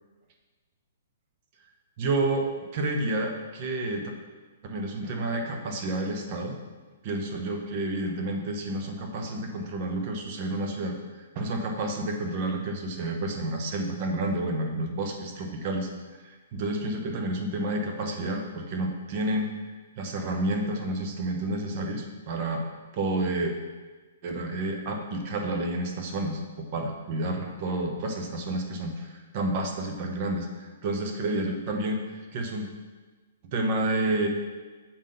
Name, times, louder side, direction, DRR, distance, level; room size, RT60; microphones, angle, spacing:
voice 1, 2.0-2.5 2.7-4.1 4.6-6.5 7.0-15.9 16.2-19.5 20.0-23.6 24.2-32.7 33.5-34.3, right 2 dB, 45° right, 3 dB, 1.0 m, -30 dB
7.1 x 3.7 x 5.3 m, 1.3 s
figure-of-eight pair, 120°, 0 cm